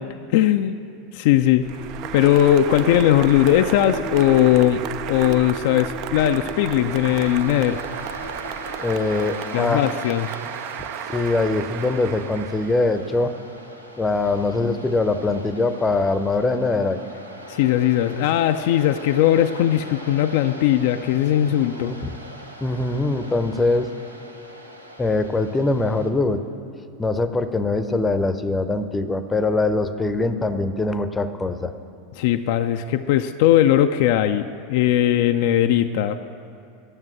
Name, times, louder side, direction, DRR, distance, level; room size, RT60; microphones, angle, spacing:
voice 1, 0.3-0.8 1.1-1.7 2.1-4.8 5.1-7.8 9.5-10.4 17.5-21.9 32.2-36.3, left 12 dB, 55° left, 7 dB, 0.4 m, -19 dB
sound 1, 1.5-9.3, right 3 dB, 25° right, 0.9 m, -36 dB
Applause, 1.6-13.1, right 11 dB, 45° right, 0.4 m, -34 dB
Waves surf, 6.3-26.1, right 1 dB, 90° right, 0.8 m, -40 dB
voice 2, 8.8-9.9 11.1-13.3 14.0-17.0 21.8-22.2 22.6-23.9 25.0-26.4 27.0-31.7, left 2 dB, 15° left, 10 dB, 0.6 m, -22 dB
9.8 x 7.3 x 9.2 m, 2.5 s
figure-of-eight pair, 85°, 0 cm